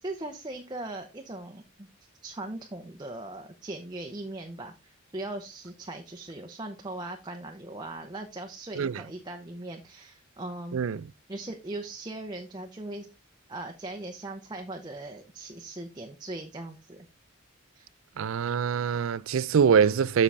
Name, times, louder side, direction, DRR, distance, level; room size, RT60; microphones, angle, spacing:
voice 1, 0.0-1.9 2.2-10.8 11.3-13.1 13.5-17.1 17.7-17.9, right 2 dB, 20° right, 0.7 m, -39 dB
voice 2, 18.2-20.2, right 7 dB, 80° right, 0.4 m, -24 dB
7.5 x 6.8 x 3.3 m
head